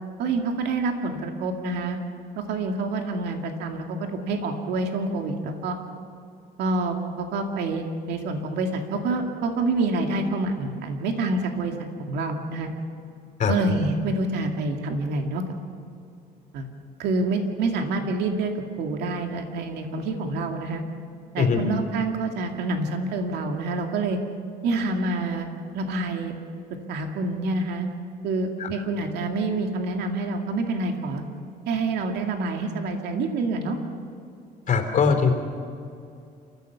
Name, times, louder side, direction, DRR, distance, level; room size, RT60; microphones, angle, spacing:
voice 1, 0.2-2.0 2.4-5.8 6.6-11.7 12.0-12.7 13.5-15.4 16.5-16.7 17.0-20.8 21.3-24.2 24.6-26.3 26.9-27.9 28.2-31.2 31.7-33.8, right 3 dB, 80° right, 3 dB, 2.3 m, -27 dB
voice 2, 34.7-35.3, left 6 dB, 50° left, 5 dB, 3.5 m, -21 dB
30.0 x 15.0 x 7.0 m, 2.5 s
cardioid pair, 110°, 17 cm